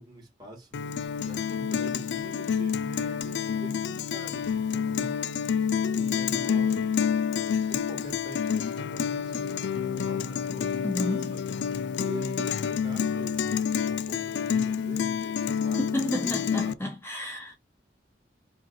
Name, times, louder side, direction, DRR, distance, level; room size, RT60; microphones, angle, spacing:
voice 1, 0.0-5.2 5.9-7.0 7.6-16.8, right 2 dB, 25° right, 2.1 m, -45 dB
Guitar, 0.7-16.7, left 7 dB, 70° left, 0.3 m, -28 dB
voice 2, 10.8-11.4 15.9-17.5, left 1 dB, 15° left, 0.6 m, -31 dB
4.8 x 2.9 x 2.7 m
head